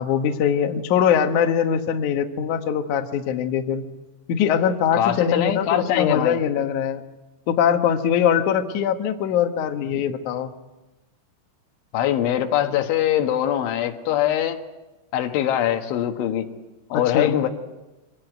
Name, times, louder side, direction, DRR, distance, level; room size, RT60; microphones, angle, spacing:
voice 1, 0.0-3.8 4.3-7.0 7.5-10.5 16.9-17.4, left 8 dB, 65° left, 2.0 m, -22 dB
voice 2, 4.9-6.4 11.9-14.6 15.1-16.5 16.9-17.5, left 11 dB, 85° left, 3.9 m, -22 dB
25.0 x 18.5 x 9.1 m
omnidirectional pair, 5.3 m